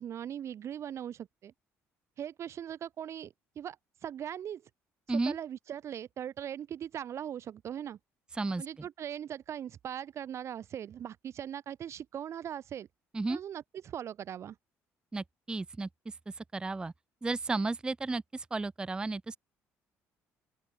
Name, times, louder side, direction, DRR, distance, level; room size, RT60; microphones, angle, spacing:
voice 1, 0.0-1.5 2.2-3.8 4.0-4.6 5.1-8.0 8.6-12.9 13.3-14.6, right 9 dB, 55° right, 0.7 m, -40 dB
voice 2, 15.1-15.9 16.5-16.9 17.2-19.4, right 3 dB, 15° right, 0.3 m, -33 dB
open air
supercardioid pair, 80°, 6 cm